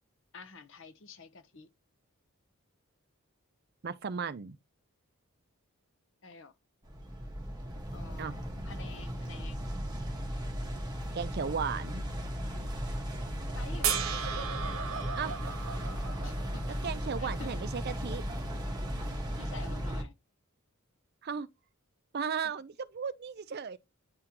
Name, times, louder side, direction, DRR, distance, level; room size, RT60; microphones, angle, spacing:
voice 1, 0.3-1.7 6.2-6.5 7.9-9.7 13.5-14.1 16.2-16.6 17.2-17.5 19.4-20.1, left 4 dB, 60° left, 0.8 m, -49 dB
voice 2, 3.8-4.6 8.2-8.4 11.1-12.0 15.2-15.4 16.8-18.2 21.2-21.5 22.1-23.8, right 6 dB, 45° right, 0.4 m, -35 dB
sound 1, 6.8-20.0, equal, 20° right, 1.3 m, -36 dB
sound 2, 13.8-17.1 19.1-19.2, right 8 dB, 65° right, 0.9 m, -35 dB
9.6 x 3.7 x 2.9 m
head